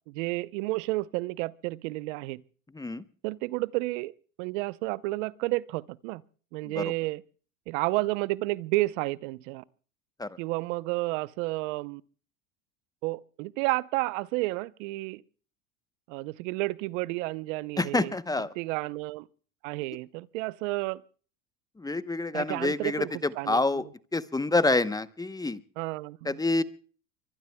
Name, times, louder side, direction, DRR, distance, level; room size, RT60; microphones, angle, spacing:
voice 1, 0.1-2.4 3.2-4.1 4.4-6.2 6.5-7.2 7.7-9.6 10.4-12.0 13.0-15.2 16.1-18.1 18.6-19.3 19.6-21.0 22.3-23.1 23.4-23.6 25.8-26.4, right 21 dB, 70° right, 0.8 m, -31 dB
voice 2, 17.8-18.5 21.8-23.8 24.1-25.6 26.2-26.6, left 2 dB, 10° left, 0.9 m, -27 dB
24.5 x 23.0 x 2.2 m
hypercardioid pair, 95°, 39 cm